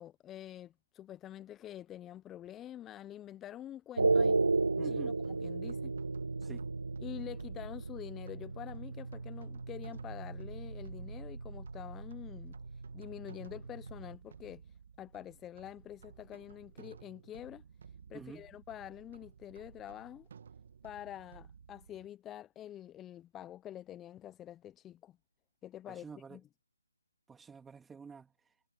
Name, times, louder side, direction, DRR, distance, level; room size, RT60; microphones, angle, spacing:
voice 1, 0.0-4.4 4.8-5.0 5.3-5.9 7.0-17.6 18.1-20.3 20.8-25.2 25.6-26.4, left 12 dB, 10° left, 0.6 m, -47 dB
sound 1, 4.0-14.2, right 3 dB, 75° right, 0.6 m, -35 dB
voice 2, 4.8-5.2 6.4-6.7 18.1-18.5 25.9-26.4 27.3-28.3, right 5 dB, 5° right, 2.9 m, -48 dB
sound 2, 4.9-22.1, right 7 dB, 45° right, 1.5 m, -56 dB
figure-of-eight pair, 155°, 0 cm